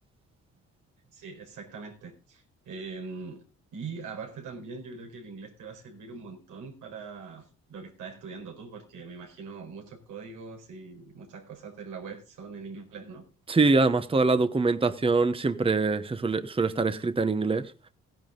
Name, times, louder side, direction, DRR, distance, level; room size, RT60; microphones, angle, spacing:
voice 1, 1.1-3.4 3.7-13.3, right 4 dB, 90° right, 4.6 m, -42 dB
voice 2, 13.5-17.7, right 3 dB, 20° right, 1.0 m, -24 dB
16.0 x 10.5 x 3.9 m
cardioid pair, 90°, 30 cm